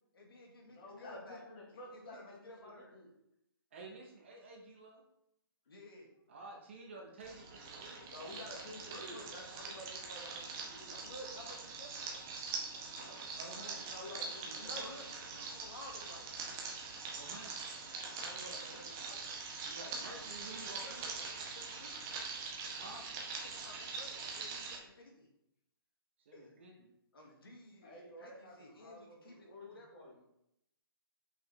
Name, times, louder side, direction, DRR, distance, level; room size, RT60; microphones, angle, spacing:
voice 1, 0.1-1.4 1.9-3.0 5.7-6.1 10.9-12.1 14.5-16.3 18.5-18.9 20.1-20.2 20.8-22.0 23.4-25.3 26.3-26.5 27.1-27.9 28.2-30.0, left 1 dB, 70° left, 0 dB, 2.2 m, -53 dB
voice 2, 0.7-3.1 8.1-11.1 13.5-14.9 17.9-19.2 27.8-30.2, left 1 dB, 25° left, -3 dB, 1.8 m, -52 dB
voice 3, 3.7-5.0 6.3-8.4 8.7-9.3 12.9-13.8 17.1-17.5 18.7-18.8 19.6-21.3 22.8-23.0 26.2-26.9, right 2 dB, 30° right, 0 dB, 1.2 m, -51 dB
sound 1, 7.2-24.8, right 4 dB, 5° right, 0.3 m, -43 dB
7.1 x 5.5 x 3.5 m, 0.81 s
hypercardioid pair, 175°, 13 cm